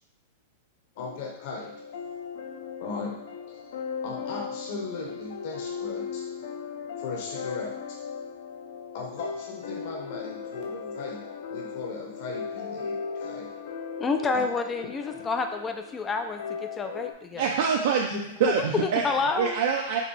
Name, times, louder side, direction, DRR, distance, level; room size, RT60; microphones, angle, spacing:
sound 1, 1.0-17.1, left 6 dB, 70° left, 0.7 m, -37 dB
voice 1, 1.0-1.7 2.8-3.1 3.5-3.6 4.0-6.2 7.0-7.8 8.9-11.2 11.5-13.5 14.3-14.5 18.1-18.2 18.8-18.9, left 4 dB, 55° left, -2 dB, 1.0 m, -37 dB
voice 2, 14.0-17.4 18.5-18.6 19.0-19.6, left 4 dB, 15° left, 6 dB, 0.3 m, -29 dB
voice 3, 17.4-18.1 18.4-19.0 19.4-20.0, right 6 dB, 65° right, 0 dB, 0.5 m, -25 dB
5.1 x 2.8 x 3.3 m, 0.82 s
hypercardioid pair, 140°, 0 cm